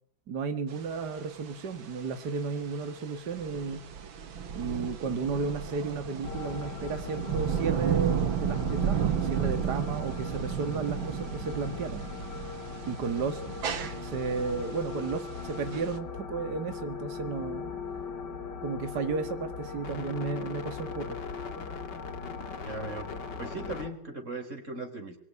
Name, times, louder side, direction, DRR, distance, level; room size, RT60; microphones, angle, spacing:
voice 1, 0.3-3.8 4.5-12.0 12.9-13.4 14.0-17.7 18.6-21.2, right 4 dB, 55° right, 8 dB, 2.4 m, -33 dB
sound 1, 0.7-16.0, right 8 dB, 85° right, 2.4 m, -33 dB
sound 2, 6.2-23.9, left 5 dB, 60° left, 2.8 m, -39 dB
voice 2, 22.6-23.1 23.4-25.2, right 2 dB, 35° right, 4 dB, 5.6 m, -38 dB
24.5 x 24.5 x 9.8 m, 0.65 s
omnidirectional pair, 2.1 m